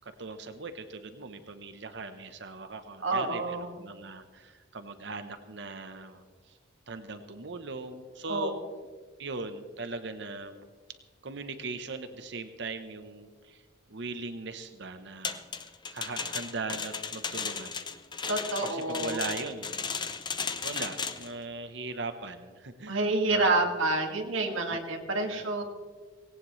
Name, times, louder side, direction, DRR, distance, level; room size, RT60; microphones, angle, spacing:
voice 1, 0.0-6.6 6.9-8.6 9.2-10.6 11.2-13.6 13.9-15.4 15.9-17.8 18.6-19.9 20.6-23.0 23.3-23.7 24.7-24.8 25.2-25.5, right 3 dB, 60° right, 9 dB, 0.9 m, -39 dB
voice 2, 3.0-3.7 8.3-8.6 18.3-19.2 22.9-25.6, right 2 dB, 85° right, 2 dB, 2.0 m, -28 dB
sound 1, 15.2-21.3, left 5 dB, 25° left, 0.7 m, -35 dB
18.0 x 17.5 x 3.2 m, 1.5 s
head